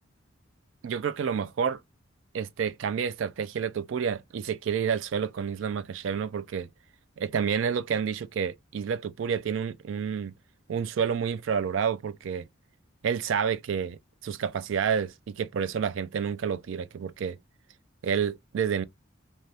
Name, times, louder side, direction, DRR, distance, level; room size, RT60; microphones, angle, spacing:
voice 1, 0.8-1.8 2.3-6.7 7.2-10.3 10.7-12.4 13.0-17.4 18.0-18.8, right 7 dB, 70° right, 0.3 m, -29 dB
2.7 x 2.2 x 3.2 m
head